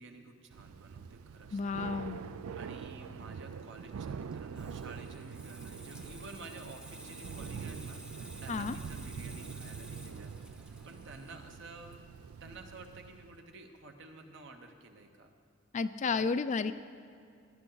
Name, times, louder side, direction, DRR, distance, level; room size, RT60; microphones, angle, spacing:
voice 1, 0.0-1.6 2.6-10.3 10.8-12.1 12.4-15.3 16.0-16.3, right 3 dB, 60° right, 5 dB, 1.1 m, -51 dB
Thunder / Rain, 0.5-13.4, right 6 dB, 85° right, 0.4 m, -44 dB
voice 2, 1.5-2.2 8.5-8.8 15.7-16.7, left 4 dB, 35° left, 12 dB, 0.4 m, -32 dB
Water tap faucet / Sink (filling or washing), 4.2-13.5 13.8-14.0, equal, 5° right, 0.8 m, -53 dB
17.5 x 11.0 x 3.9 m, 2.4 s
head